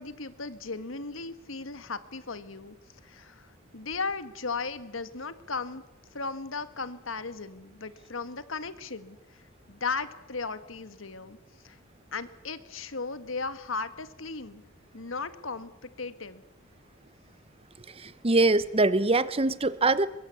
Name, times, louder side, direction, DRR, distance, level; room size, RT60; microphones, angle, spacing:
voice 1, 0.0-2.8 3.0-5.8 6.1-9.4 9.7-11.4 11.6-11.8 12.1-14.6 14.9-16.4, left 4 dB, 80° left, 13 dB, 1.6 m, -36 dB
voice 2, 18.0-20.1, right 2 dB, 30° right, 16 dB, 0.9 m, -23 dB
22.5 x 22.5 x 8.4 m, 0.99 s
head